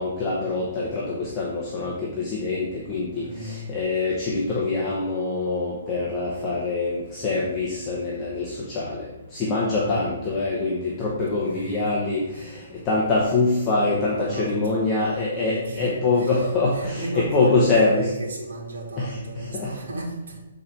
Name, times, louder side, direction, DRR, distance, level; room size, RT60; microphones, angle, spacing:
voice 1, 0.0-18.0 19.0-19.8, left 3 dB, 10° left, -5 dB, 0.9 m, -24 dB
voice 2, 3.1-3.6 9.5-10.0 11.5-12.0 12.3-12.5 14.1-16.4 16.7-20.4, right 1 dB, 65° right, -4 dB, 2.6 m, -35 dB
7.3 x 4.3 x 5.9 m, 1.0 s
hypercardioid pair, 175°, 0 cm